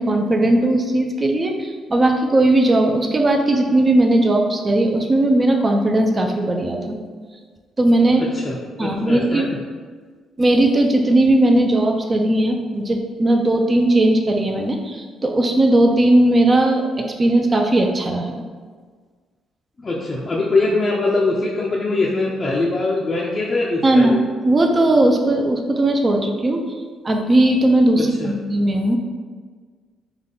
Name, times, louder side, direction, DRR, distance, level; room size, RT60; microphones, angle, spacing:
voice 1, 0.0-7.0 7.8-8.2 8.8-9.4 10.4-18.4 23.8-26.6 27.0-29.0, right 1 dB, 30° right, 3 dB, 0.4 m, -17 dB
voice 2, 8.1-9.6 19.8-24.2 28.2-28.3, left 2 dB, 35° left, -4 dB, 0.4 m, -22 dB
3.5 x 2.2 x 3.8 m, 1.5 s
cardioid pair, 90°, 0 cm